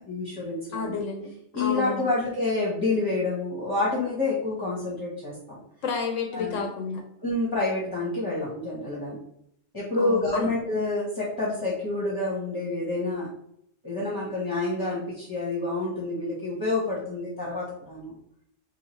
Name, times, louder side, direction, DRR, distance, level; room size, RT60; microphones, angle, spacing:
voice 1, 0.1-1.0 1.5-5.6 6.3-6.6 7.2-9.2 9.7-13.3 13.8-18.1, left 2 dB, 20° left, -6 dB, 1.0 m, -28 dB
voice 2, 0.7-2.1 5.8-7.0 10.0-10.5, left 5 dB, 75° left, 3 dB, 0.9 m, -31 dB
4.8 x 2.4 x 3.0 m, 0.72 s
omnidirectional pair, 1.3 m